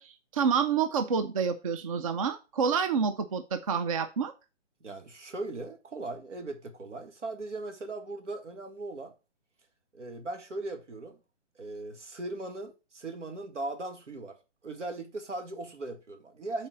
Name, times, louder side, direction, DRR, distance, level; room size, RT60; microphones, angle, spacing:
voice 1, 0.0-4.3, right 6 dB, 30° right, 0.4 m, -28 dB
voice 2, 4.8-9.1 9.9-11.2 11.6-14.4 14.6-16.7, right 2 dB, 75° right, 1.9 m, -38 dB
7.1 x 4.3 x 5.7 m
figure-of-eight pair, 140°, 36 cm